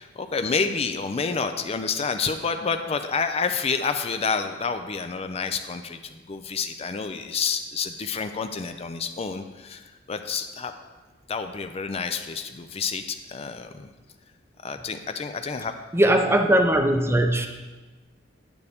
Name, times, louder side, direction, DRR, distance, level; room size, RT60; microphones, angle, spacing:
voice 1, 0.0-10.7 11.3-13.9 14.6-15.7, left 5 dB, 35° left, 8 dB, 0.4 m, -29 dB
voice 2, 15.9-17.5, right 1 dB, 15° right, 5 dB, 0.6 m, -19 dB
9.5 x 9.2 x 3.5 m, 1.2 s
head